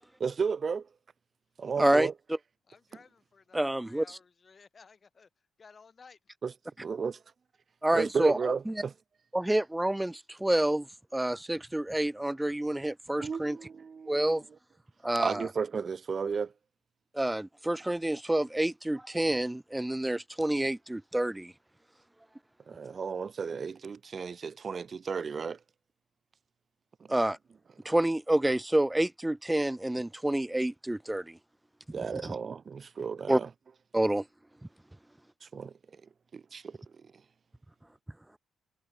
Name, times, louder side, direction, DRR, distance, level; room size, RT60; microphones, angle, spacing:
voice 1, 0.2-0.9 1.6-2.1 6.4-6.5 6.8-7.2 7.9-8.9 13.2-14.4 15.2-16.5 22.7-25.6 31.9-33.5 35.4-35.7 36.3-36.8, right 5 dB, 40° right, 0.9 m, -33 dB
voice 2, 1.8-2.4 3.5-4.0 7.8-8.4 8.7-8.8 9.3-13.6 14.1-14.4 15.0-15.5 17.1-21.5 27.1-27.4 27.8-31.4 32.1-32.3 33.3-33.4 33.9-34.3, right 1 dB, 10° right, 0.3 m, -28 dB
voice 3, 2.7-6.2 34.7-34.8, left 5 dB, 40° left, 5.9 m, -57 dB
cardioid pair, 90°, 0 cm